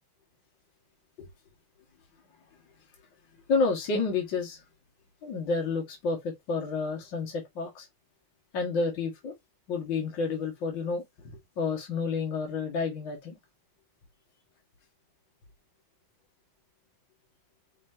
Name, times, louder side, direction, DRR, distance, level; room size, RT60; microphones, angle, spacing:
voice 1, 3.5-4.6 5.2-7.9 8.5-9.3 9.7-11.0 11.6-13.4, left 4 dB, 65° left, 2.2 m, -30 dB
6.2 x 3.0 x 2.7 m
omnidirectional pair, 2.3 m